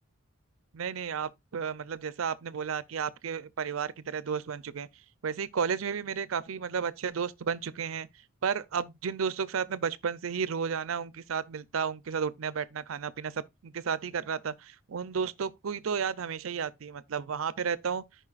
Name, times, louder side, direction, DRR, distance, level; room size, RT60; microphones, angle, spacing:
voice 1, 0.7-4.9 5.2-8.1 8.4-18.0, right 6 dB, 80° right, 0.5 m, -33 dB
13.5 x 5.1 x 2.4 m
head